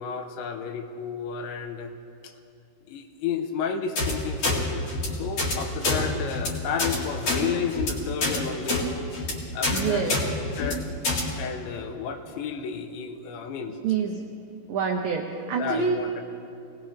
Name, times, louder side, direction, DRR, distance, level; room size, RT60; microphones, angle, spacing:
voice 1, 0.0-1.9 2.2-2.3 2.9-4.9 5.1-8.8 9.5-10.1 10.6-10.8 11.4-13.8 15.6-16.2, left 6 dB, 85° left, 6 dB, 3.1 m, -32 dB
sound 1, 4.0-4.1 4.4-4.6 4.9-5.1 5.4-5.5 5.8-6.0 6.3-6.5 6.8-7.0 7.2-7.4 7.7-7.9 8.2-8.4 8.7-8.8 9.1-9.3 9.6-9.8 10.1-10.2 10.5-10.7 11.0-11.2, left 3 dB, 45° left, 2.6 m, -25 dB
voice 2, 9.7-10.2 13.8-14.3 14.7-16.0, right 6 dB, 85° right, 1 dB, 2.0 m, -26 dB
23.5 x 18.5 x 3.3 m, 2.6 s
omnidirectional pair, 5.3 m